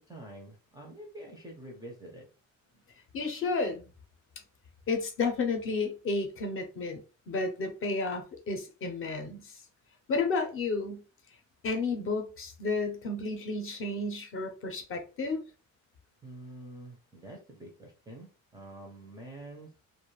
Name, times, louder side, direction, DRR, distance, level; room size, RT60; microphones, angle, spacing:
voice 1, 0.1-2.3 16.2-19.7, right 1 dB, 10° right, 0.4 m, -47 dB
voice 2, 3.1-3.8 4.9-7.0 7.3-9.6 10.1-11.0 11.6-15.4, left 3 dB, 40° left, 0.6 m, -32 dB
2.4 x 2.2 x 3.0 m
cardioid pair, 175°, 35 cm